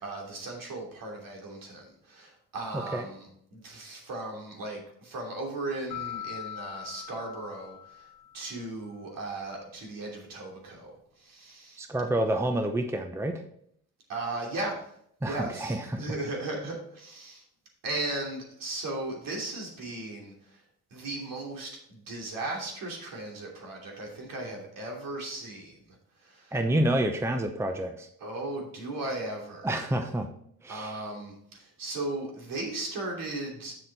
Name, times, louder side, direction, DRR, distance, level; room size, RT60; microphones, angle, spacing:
voice 1, 0.0-8.1 8.3-11.8 14.1-14.8 15.2-17.4 17.8-20.6 20.9-26.0 26.2-26.6 28.2-29.7 30.7-33.7, right 2 dB, 65° right, 0 dB, 3.0 m, -37 dB
sound 1, 5.9-8.7, left 11 dB, 65° left, 1.2 m, -41 dB
voice 2, 11.8-13.4 15.2-16.0 26.5-28.1 29.6-30.3 30.6-31.0, right 1 dB, 5° right, 6 dB, 0.7 m, -28 dB
7.8 x 6.4 x 4.0 m, 0.67 s
cardioid pair, 105°, 36 cm